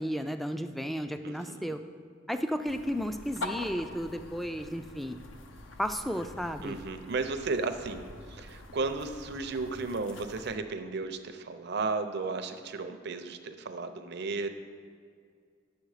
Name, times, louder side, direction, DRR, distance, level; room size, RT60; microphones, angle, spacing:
voice 1, 0.0-1.8 2.3-5.2 5.8-6.8, equal, ahead, 7 dB, 0.3 m, -33 dB
voice 2, 1.2-1.7 6.6-14.5, right 3 dB, 55° right, 8 dB, 0.6 m, -34 dB
sound 1, 2.6-10.6, left 2 dB, 70° left, 0.8 m, -45 dB
10.5 x 6.9 x 4.9 m, 2.2 s
head